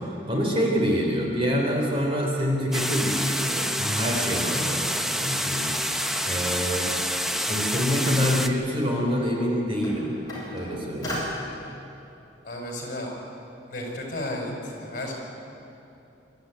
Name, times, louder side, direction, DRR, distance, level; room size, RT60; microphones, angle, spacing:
voice 1, 0.3-6.9 7.5-10.1 10.5-11.2, equal, 30° right, -1 dB, 3.6 m, -26 dB
sound 1, 2.7-8.5, equal, ahead, 0.7 m, -27 dB
sound 2, 5.6-6.9 7.3-7.5 7.7-7.8 8.2-11.2, left 1 dB, 20° left, 6.8 m, -41 dB
voice 2, 12.4-13.1 13.7-15.1, left 1 dB, 50° left, 0 dB, 5.1 m, -33 dB
25.0 x 13.0 x 9.4 m, 2.8 s
head